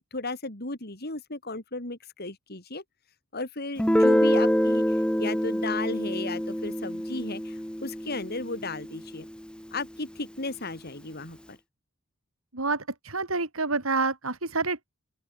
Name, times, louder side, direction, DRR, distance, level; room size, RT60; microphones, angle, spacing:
voice 1, 0.0-2.8 3.3-9.2 9.7-11.6, left 3 dB, 50° left, 4.1 m, -35 dB
Guitar, 3.8-9.3, equal, 5° left, 1.7 m, -26 dB
voice 2, 12.5-14.9, right 3 dB, 85° right, 3.9 m, -28 dB
open air
head